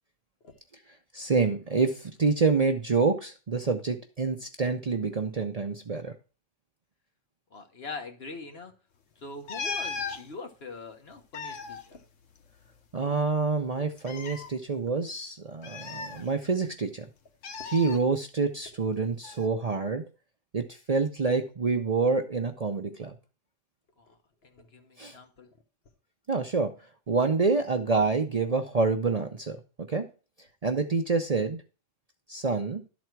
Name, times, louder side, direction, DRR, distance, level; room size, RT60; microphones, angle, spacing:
voice 1, 1.1-6.1 12.9-17.1 17.7-20.0 20.5-23.2 25.0-25.2 26.3-26.7 27.1-29.6 29.9-30.1 30.6-31.6 32.3-32.8, right 4 dB, 40° right, 5 dB, 0.7 m, -27 dB
voice 2, 7.5-8.7 9.2-12.0 24.0-24.2 24.4-25.5, left 3 dB, 55° left, 5 dB, 1.4 m, -43 dB
sound 1, 9.5-10.2 11.1-12.8 13.1-13.2 14.0-14.5 15.6-16.7 17.4-18.0 19.2-19.5, left 5 dB, 85° left, 1.3 m, -37 dB
12.0 x 4.2 x 4.5 m, 0.34 s
omnidirectional pair, 1.3 m